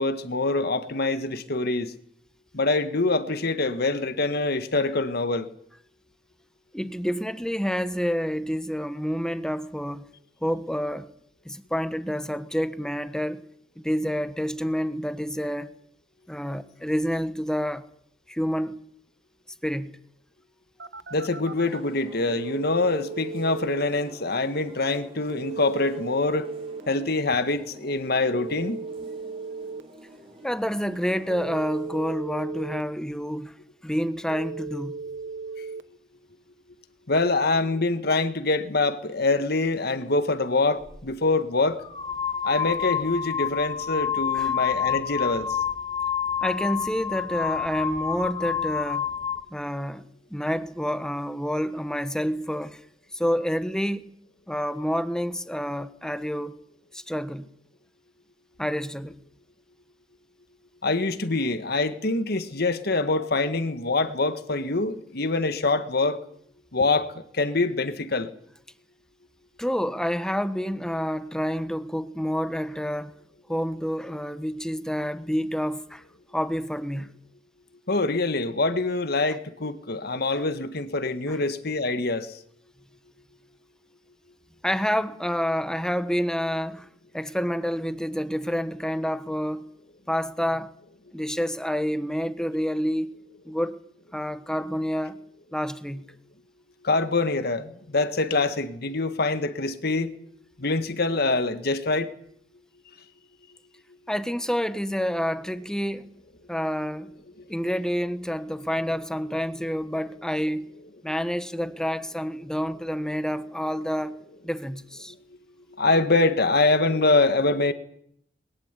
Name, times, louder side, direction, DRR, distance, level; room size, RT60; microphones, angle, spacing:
voice 1, 0.0-1.9 2.5-5.5 21.1-26.5 26.9-28.8 35.6-35.7 37.1-41.8 42.4-45.6 60.8-66.2 66.7-68.3 77.9-82.3 96.8-100.1 100.6-102.1 115.8-117.7, left 3 dB, 60° left, 1.8 m, -25 dB
voice 2, 6.7-10.0 10.4-11.1 11.4-13.4 13.8-15.7 16.3-17.8 18.3-18.8 19.6-20.0 30.4-33.5 33.8-35.0 44.3-44.5 46.4-49.1 49.5-52.8 53.1-54.1 54.5-56.5 56.9-57.5 58.6-59.2 69.6-73.1 73.5-76.0 76.3-77.1 80.3-80.4 81.3-81.4 84.6-86.9 87.1-89.6 90.1-90.7 91.1-93.1 93.4-93.8 94.1-95.2 95.5-96.0 104.1-106.1 106.5-107.1 107.5-110.7 111.0-114.2 114.4-115.1, equal, 5° left, 1.2 m, -28 dB
Telephone, 20.8-21.8 22.3-23.8 25.3-26.8 28.3-29.8 31.3-32.8 34.3-35.8, right 4 dB, 70° right, 1.0 m, -36 dB
sound 1, 21.5-32.2, right 1 dB, 30° right, 5.0 m, -48 dB
sound 2, 40.8-41.0 41.8-49.5, left 8 dB, 30° left, 2.4 m, -28 dB
22.0 x 20.0 x 8.4 m
head